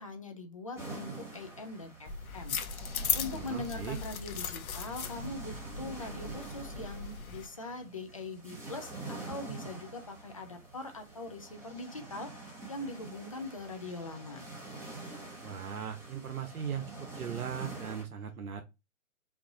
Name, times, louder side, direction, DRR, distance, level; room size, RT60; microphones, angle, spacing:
voice 1, 0.0-2.6 3.1-14.5, left 2 dB, 25° left, 0.4 m, -42 dB
sound 1, 0.8-18.0, right 3 dB, 5° right, 1.0 m, -46 dB
sound 2, 2.1-7.5, left 6 dB, 80° left, 0.9 m, -37 dB
voice 2, 3.3-4.0 15.4-18.6, right 8 dB, 85° right, 1.0 m, -38 dB
4.7 x 2.6 x 3.8 m
hypercardioid pair, 145°, 42 cm